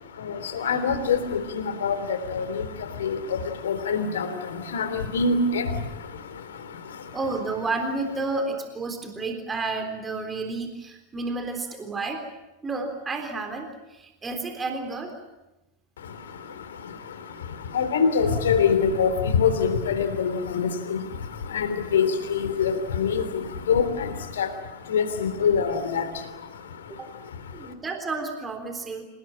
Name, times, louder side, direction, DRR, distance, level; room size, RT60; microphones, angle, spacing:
voice 1, 0.1-7.2 16.0-27.7, left 6 dB, 65° left, 10 dB, 3.3 m, -26 dB
voice 2, 7.1-12.2 12.6-15.1 27.0-27.1 27.5-29.0, right 3 dB, 15° right, 5 dB, 3.7 m, -31 dB
27.5 x 19.5 x 8.9 m, 1.0 s
figure-of-eight pair, 90°, 0 cm